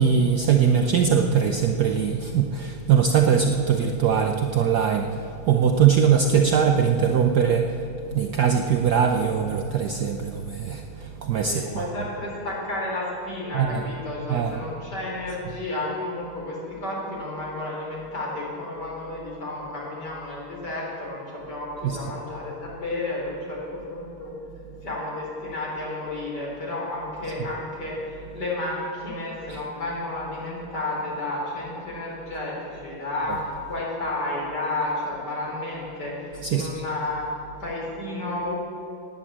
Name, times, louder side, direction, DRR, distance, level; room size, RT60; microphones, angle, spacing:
voice 1, 0.0-11.9 13.5-13.8 14.3-14.6 21.8-22.1 29.5-29.6 33.3-33.4 36.4-36.8, right 7 dB, 65° right, 5 dB, 1.0 m, -21 dB
voice 2, 11.5-24.3 24.8-37.3 37.6-38.5, left 2 dB, 50° left, -4 dB, 4.6 m, -32 dB
16.5 x 9.7 x 7.3 m, 2.7 s
omnidirectional pair, 2.4 m